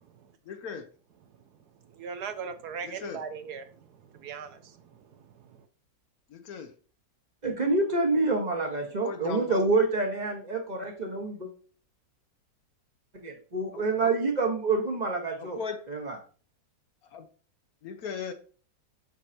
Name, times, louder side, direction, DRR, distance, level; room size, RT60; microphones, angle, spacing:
voice 1, 0.5-0.9 2.8-3.2 6.3-6.7 9.0-9.6 13.7-14.1 15.4-15.9 17.1-17.3 17.8-18.3, left 6 dB, 65° left, 1.1 m, -38 dB
voice 2, 1.9-3.6 4.1-4.8, right 6 dB, 70° right, 1.1 m, -38 dB
voice 3, 7.4-11.5 13.2-15.6 15.9-16.2, right 3 dB, 25° right, 1.3 m, -27 dB
7.7 x 6.5 x 2.8 m
omnidirectional pair, 1.9 m